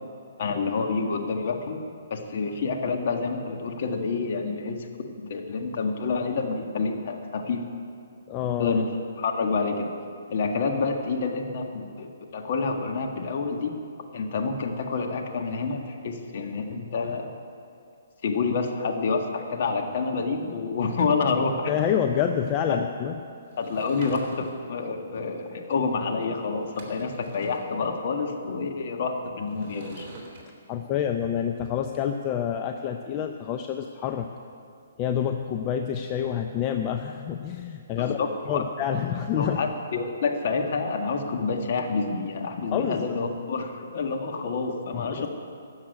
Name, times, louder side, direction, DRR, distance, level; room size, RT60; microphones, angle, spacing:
voice 1, 0.4-1.8 2.1-7.6 8.6-8.9 9.2-9.9 10.3-13.7 14.1-17.3 18.2-21.7 22.7-22.8 23.6-30.1 38.1-38.6 39.4-45.3, left 4 dB, 55° left, 3 dB, 1.7 m, -28 dB
voice 2, 8.3-8.7 21.7-23.1 30.7-34.3 35.0-39.6 42.7-43.2 44.9-45.3, left 9 dB, 30° left, 5 dB, 0.6 m, -27 dB
Sliding door / Wood, 23.5-24.7 26.2-26.3 26.6-27.7 29.5-30.4, right 3 dB, 40° right, 3.1 m, -44 dB
13.0 x 7.4 x 9.4 m, 2.4 s
hypercardioid pair, 145°, 0 cm